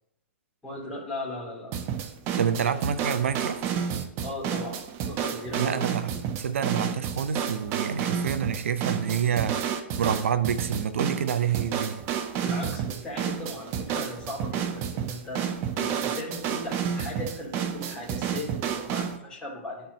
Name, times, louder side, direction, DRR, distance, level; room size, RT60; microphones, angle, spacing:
voice 1, 0.6-1.7 4.2-4.8 5.1-5.9 6.1-6.3 12.4-15.4 15.7-19.9, left 1 dB, 10° left, -6 dB, 2.7 m, -37 dB
sound 1, 1.7-19.2, right 8 dB, 35° right, 0.7 m, -30 dB
voice 2, 2.4-3.6 5.6-6.1 6.4-12.0, right 8 dB, 80° right, 13 dB, 0.6 m, -27 dB
11.5 x 4.5 x 2.7 m, 0.82 s
hypercardioid pair, 130°, 7 cm